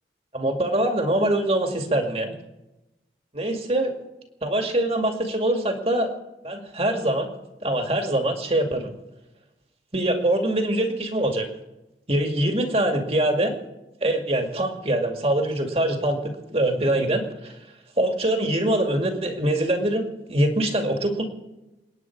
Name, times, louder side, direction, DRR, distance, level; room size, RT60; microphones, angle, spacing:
voice 1, 0.3-2.3 3.3-3.9 4.4-6.1 6.4-7.3 7.6-8.9 9.9-11.5 12.1-13.6 14.0-17.5 18.0-20.0 20.3-21.2, right 1 dB, 35° right, 4 dB, 2.2 m, -23 dB
29.0 x 9.7 x 4.7 m, 1.0 s
head